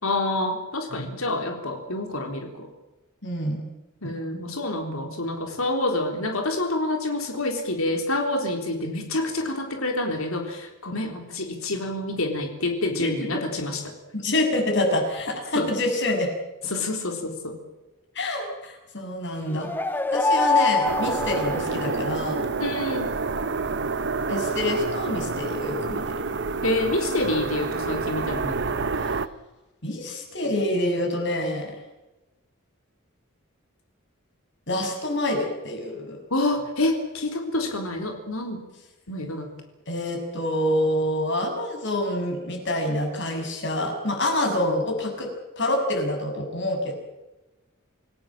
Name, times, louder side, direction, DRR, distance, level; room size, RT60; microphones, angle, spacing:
voice 1, 0.0-2.7 4.0-13.9 15.6-15.7 16.6-17.6 22.6-23.1 26.6-28.8 36.3-38.6 39.1-39.5, left 2 dB, 90° left, 4 dB, 3.9 m, -27 dB
voice 2, 3.2-3.6 4.0-4.2 13.0-13.1 14.1-16.3 18.2-19.7 20.1-22.4 24.3-26.0 29.8-31.7 34.7-36.2 39.9-45.3 45.6-46.9, left 1 dB, 60° left, 3 dB, 7.1 m, -26 dB
sound 1, 19.4-22.3, left 3 dB, 10° left, 1.0 m, -25 dB
sound 2, 20.8-29.3, right 4 dB, 55° right, 1.1 m, -28 dB
28.0 x 17.5 x 7.7 m, 1.0 s
head